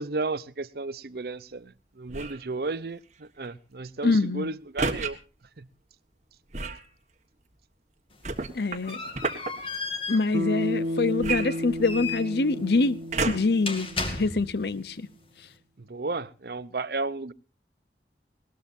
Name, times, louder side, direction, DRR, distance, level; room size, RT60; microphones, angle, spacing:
voice 1, 0.0-5.2 5.6-5.7 14.1-14.2 15.8-17.3, right 3 dB, 60° right, 0.7 m, -33 dB
sound 1, 2.1-2.5 4.8-5.1 6.5-6.9 8.2-9.5 11.2-12.2 13.1-13.6 14.3-14.4, right 4 dB, 40° right, 1.5 m, -31 dB
voice 2, 4.0-4.5 8.5-9.0 10.1-13.0 13.3-13.9 14.2-15.1, left 3 dB, 65° left, 0.8 m, -25 dB
sound 2, 8.1-14.7, left 4 dB, 30° left, 2.5 m, -36 dB
Bass guitar, 10.3-14.7, left 1 dB, 75° right, 1.4 m, -33 dB
20.0 x 19.0 x 2.6 m
head